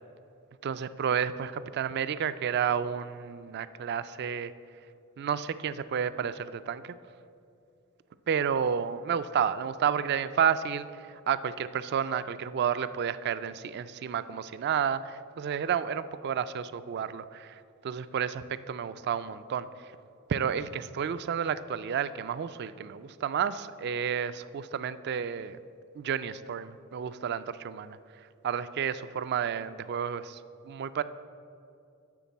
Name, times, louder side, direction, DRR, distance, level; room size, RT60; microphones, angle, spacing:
voice 1, 0.6-4.5 5.2-6.9 8.3-19.9 20.3-25.6 25.9-31.0, right 7 dB, 50° right, 14 dB, 0.3 m, -31 dB
8.4 x 5.9 x 8.1 m, 2.5 s
head